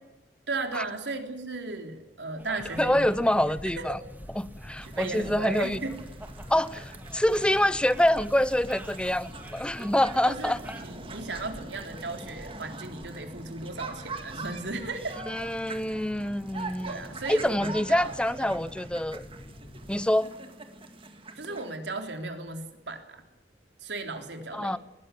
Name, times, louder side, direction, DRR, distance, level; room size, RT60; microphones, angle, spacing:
voice 1, 0.5-3.3 3.7-4.0 4.8-6.0 10.2-10.5 10.8-15.2 16.9-18.1 18.4-18.7 21.4-23.2 23.8-24.8, right 3 dB, 80° right, 5 dB, 3.6 m, -36 dB
sound 1, 2.4-10.8, right 1 dB, 10° right, 2.1 m, -47 dB
Boat Water vehicle, 2.6-20.0, left 1 dB, 25° left, 1.8 m, -47 dB
voice 2, 2.8-4.0 4.4-5.8 6.5-6.8 7.1-10.6 15.3-17.0 17.3-19.3 19.9-20.3 24.5-24.8, left 1 dB, 5° left, 17 dB, 0.6 m, -26 dB
sound 2, 4.8-21.8, right 3 dB, 30° right, 2.1 m, -44 dB
21.0 x 16.0 x 8.6 m, 1.0 s
head